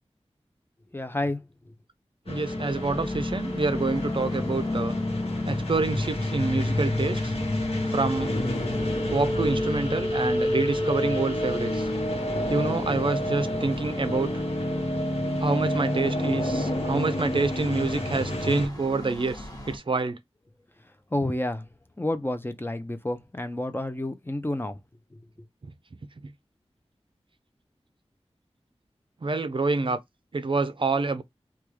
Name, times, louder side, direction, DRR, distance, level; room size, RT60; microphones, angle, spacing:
voice 1, 0.9-1.7 20.8-21.7 22.0-24.8 25.1-25.5, left 1 dB, 20° left, 0.5 m, -31 dB
sound 1, 2.3-18.7, left 1 dB, 65° left, 1.0 m, -28 dB
voice 2, 2.3-5.0 5.5-7.3 7.9-8.3 9.1-11.9 12.5-14.3 15.4-20.2 25.6-25.7 26.2-26.3 29.2-30.0 30.3-31.2, right 3 dB, 50° right, 0.5 m, -27 dB
sound 2, 2.7-19.8, left 1 dB, 35° left, 1.1 m, -43 dB
3.4 x 2.3 x 3.1 m
wide cardioid pair, 50°, 11 cm